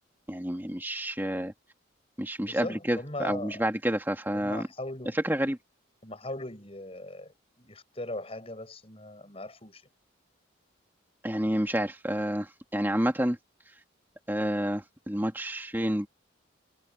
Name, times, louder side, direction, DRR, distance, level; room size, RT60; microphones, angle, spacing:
voice 1, 0.3-1.5 2.2-4.7 5.2-5.6 11.2-13.4 14.3-16.1, equal, 10° right, 2.1 m, -29 dB
voice 2, 2.4-3.6 4.3-5.2 6.0-9.8, left 1 dB, 30° left, 6.5 m, -39 dB
head